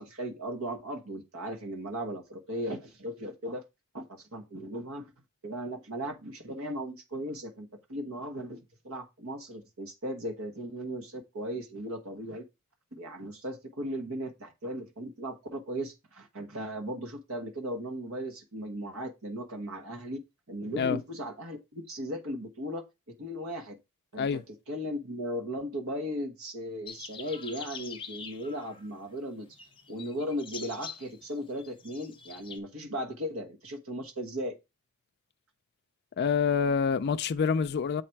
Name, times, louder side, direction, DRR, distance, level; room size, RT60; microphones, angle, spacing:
voice 1, 0.0-3.6 3.9-5.1 5.4-12.4 12.9-20.2 20.5-22.8 23.2-23.8 24.1-29.6 29.9-34.6, equal, 70° right, 1.2 m, -37 dB
sound 1, 26.9-29.0 29.5-32.6, left 6 dB, 25° left, 0.9 m, -45 dB
voice 2, 36.2-38.0, left 6 dB, 50° left, 0.4 m, -26 dB
7.5 x 4.1 x 4.5 m
head